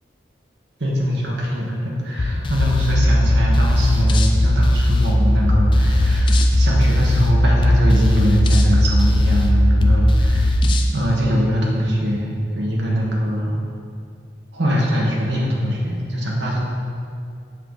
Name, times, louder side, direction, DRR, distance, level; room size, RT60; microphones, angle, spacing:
voice 1, 0.8-10.6 10.9-13.6 14.5-16.6, equal, 80° right, -3 dB, 1.2 m, -22 dB
sound 1, 2.2-10.9, left 1 dB, 25° left, 0.4 m, -17 dB
7.7 x 4.7 x 3.9 m, 2.3 s
head